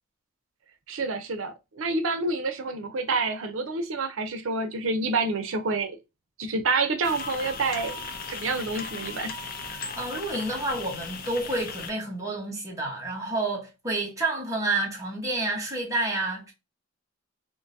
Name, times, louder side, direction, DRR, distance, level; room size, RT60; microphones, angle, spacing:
voice 1, 0.9-6.0 6.4-8.0 8.3-9.3, right 3 dB, 80° right, 0.6 m, -28 dB
sound 1, 7.0-11.9, left 5 dB, 45° left, 0.5 m, -37 dB
voice 2, 9.7-16.5, right 2 dB, 15° right, 1.1 m, -29 dB
3.7 x 2.6 x 2.6 m
head